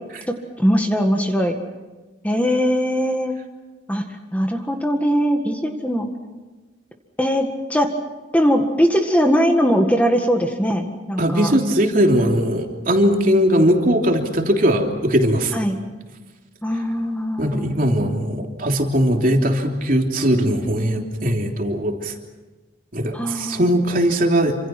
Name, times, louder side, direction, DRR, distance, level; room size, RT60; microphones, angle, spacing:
voice 1, 0.3-1.5 2.2-3.3 3.9-4.0 4.3-6.1 7.2-7.9 8.3-11.5 15.5-15.8 16.6-17.8 23.1-23.7, equal, 10° left, 3 dB, 1.9 m, -20 dB
voice 2, 11.2-15.5 17.4-22.1 22.9-24.6, equal, 45° right, 2 dB, 3.2 m, -19 dB
28.0 x 26.5 x 6.0 m, 1.2 s
head